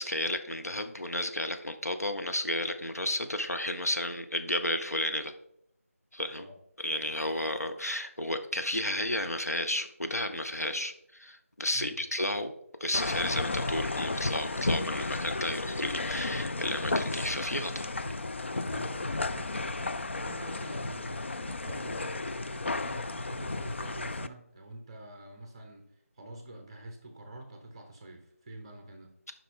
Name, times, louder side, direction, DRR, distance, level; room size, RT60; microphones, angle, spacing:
voice 1, 0.0-5.3 6.1-6.5 6.8-12.5 12.8-17.9, left 1 dB, 90° left, 7 dB, 1.0 m, -32 dB
voice 2, 11.7-12.0 18.6-25.9 26.2-29.1, right 1 dB, 20° right, 5 dB, 0.9 m, -47 dB
sound 1, 12.9-24.3, left 2 dB, 50° left, 0.4 m, -33 dB
7.9 x 5.5 x 3.7 m, 0.73 s
figure-of-eight pair, 165°, 8 cm